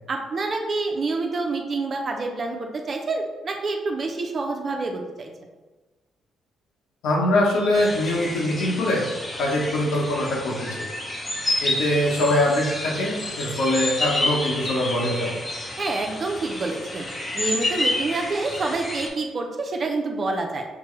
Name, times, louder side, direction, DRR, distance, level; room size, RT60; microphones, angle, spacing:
voice 1, 0.1-5.3 15.8-17.1 17.3-20.7, right 3 dB, 45° right, 2 dB, 0.6 m, -27 dB
voice 2, 7.0-9.0 9.4-10.9 11.6-15.3, left 1 dB, 85° left, -3 dB, 1.1 m, -23 dB
sound 1, 7.7-19.1, left 1 dB, 25° left, 0.8 m, -29 dB
6.0 x 2.2 x 3.1 m, 1.2 s
cardioid pair, 90°, 0 cm